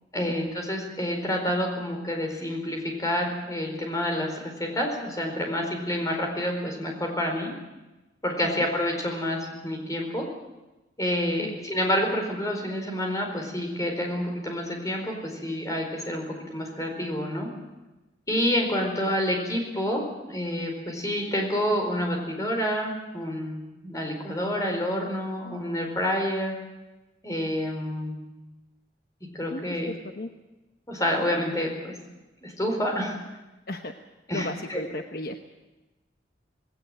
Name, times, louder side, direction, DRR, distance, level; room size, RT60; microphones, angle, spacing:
voice 1, 0.1-7.5 8.2-10.2 11.0-17.5 18.3-20.0 20.3-26.5 27.2-28.2 29.3-29.9 30.9-31.9 32.4-33.2 34.3-34.8, equal, 20° left, 2 dB, 4.6 m, -28 dB
voice 2, 29.5-30.3 33.7-33.9 34.3-35.4, left 1 dB, 55° left, 5 dB, 1.1 m, -35 dB
19.0 x 17.5 x 9.1 m, 1.1 s
head